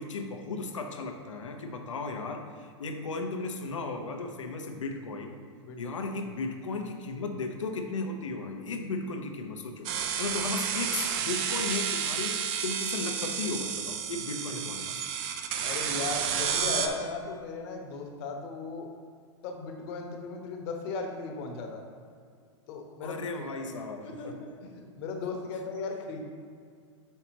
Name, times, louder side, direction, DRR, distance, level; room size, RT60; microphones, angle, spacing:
voice 1, 0.0-5.4 5.8-9.9 10.2-15.0 23.0-24.4, left 3 dB, 85° left, 4 dB, 0.8 m, -35 dB
voice 2, 5.6-5.9 15.6-18.9 19.4-21.8 22.7-23.2 23.5-23.7 24.0-26.2, left 4 dB, 55° left, 3 dB, 1.1 m, -37 dB
sound 1, 9.9-16.9, right 7 dB, 50° right, 0.7 m, -31 dB
7.0 x 5.6 x 2.9 m, 2.1 s
hypercardioid pair, 105°, 16 cm